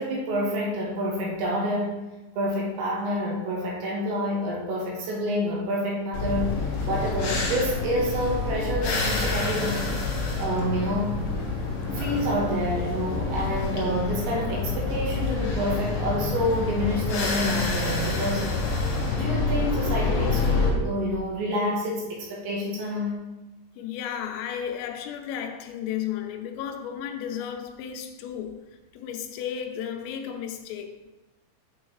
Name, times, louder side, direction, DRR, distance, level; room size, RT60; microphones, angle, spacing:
voice 1, 0.0-2.0 2.4-6.6 6.9-10.0 10.4-11.2 11.9-18.9 19.2-23.2, equal, 70° right, 3.2 m, -28 dB
sound 1, 6.1-20.7, left 3 dB, 65° left, 2.3 m, -27 dB
voice 2, 23.8-28.6 28.9-31.1, left 9 dB, 85° left, 3.3 m, -33 dB
7.9 x 6.2 x 3.2 m
omnidirectional pair, 5.9 m